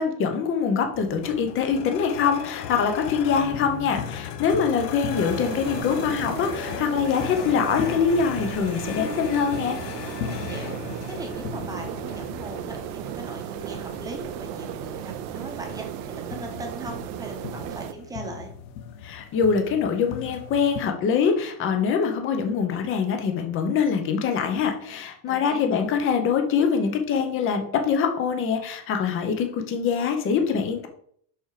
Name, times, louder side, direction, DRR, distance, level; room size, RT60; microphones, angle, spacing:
voice 1, 0.0-9.8 19.0-30.9, left 6 dB, 25° left, 5 dB, 1.0 m, -24 dB
sound 1, 0.9-20.8, left 8 dB, 80° left, 1.2 m, -37 dB
sound 2, 5.1-17.9, right 10 dB, 65° right, 0.8 m, -35 dB
voice 2, 10.3-18.5 25.3-25.6, right 2 dB, 10° right, 2 dB, 1.1 m, -39 dB
6.3 x 6.1 x 5.0 m, 0.63 s
cardioid pair, 180°, 48 cm